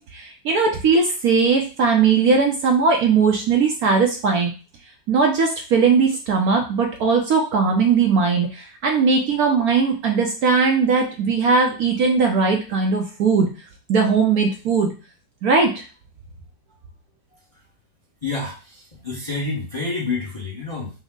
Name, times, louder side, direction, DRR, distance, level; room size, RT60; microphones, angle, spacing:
voice 1, 0.1-4.5 5.1-13.5 13.9-14.9 15.4-15.8, right 5 dB, 65° right, 2 dB, 1.0 m, -19 dB
voice 2, 18.2-20.9, left 3 dB, 25° left, -3 dB, 0.8 m, -28 dB
6.2 x 2.1 x 3.6 m, 0.36 s
omnidirectional pair, 2.0 m